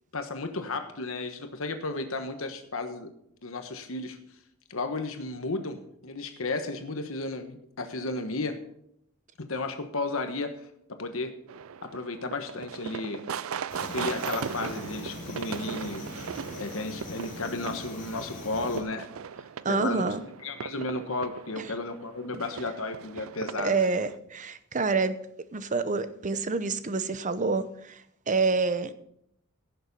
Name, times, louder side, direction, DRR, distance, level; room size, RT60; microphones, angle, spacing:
voice 1, 0.1-3.1 3.4-4.2 4.7-5.8 6.0-8.6 9.4-10.5 10.9-11.3 11.8-13.2 13.8-16.0 16.6-19.1 19.7-20.1 20.4-23.8, left 3 dB, 70° left, 7 dB, 1.3 m, -33 dB
sound 1, 11.5-24.1, right 7 dB, 70° right, 0.4 m, -39 dB
sound 2, 13.7-18.8, left 1 dB, 35° left, 3.4 m, -42 dB
voice 2, 19.6-20.2 21.6-21.7 23.5-25.2 25.5-28.9, right 4 dB, 35° right, 13 dB, 0.8 m, -27 dB
16.0 x 7.0 x 5.5 m, 0.72 s
head